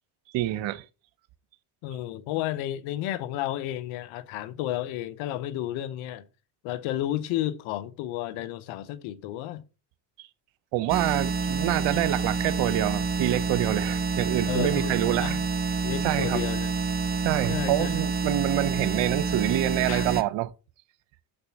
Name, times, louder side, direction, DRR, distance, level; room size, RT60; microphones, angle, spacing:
voice 1, 0.3-0.8 10.2-10.3 10.7-15.4 16.0-16.4 17.2-20.5, right 15 dB, 65° right, 0.8 m, -27 dB
voice 2, 1.8-6.2 6.6-9.6 14.5-15.4 15.8-16.7 17.5-18.0 19.9-20.1, left 13 dB, 75° left, 0.9 m, -32 dB
sound 1, 10.9-20.2, right 4 dB, 20° right, 0.6 m, -28 dB
6.8 x 4.2 x 5.8 m
supercardioid pair, 70°, 48 cm